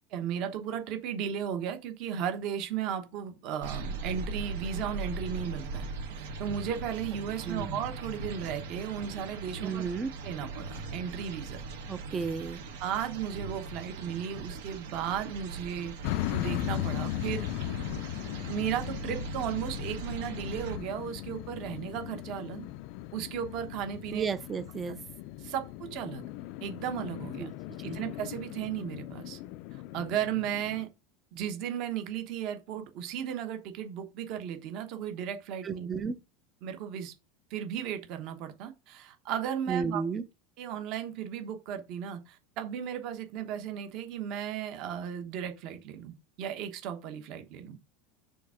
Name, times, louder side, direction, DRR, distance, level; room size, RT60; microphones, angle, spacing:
voice 1, 0.1-9.8 10.2-11.7 11.9-12.0 12.8-15.9 16.3-17.5 18.5-22.7 23.1-24.3 25.4-26.2 26.6-27.5 27.8-29.4 29.7-30.9 31.3-35.9 36.6-37.1 37.5-40.0 40.6-47.8, right 9 dB, 45° right, 1.1 m, -35 dB
sound 1, 3.6-20.8, right 4 dB, 90° right, 1.9 m, -40 dB
voice 2, 9.6-10.1 11.9-12.6 24.1-25.0 27.4-27.5 27.9-28.0 35.6-36.1 39.7-40.2, right 5 dB, 15° right, 0.5 m, -33 dB
sound 2, 16.0-30.8, left 15 dB, 50° left, 0.4 m, -38 dB
6.9 x 3.5 x 6.2 m
supercardioid pair, 165°, 0 cm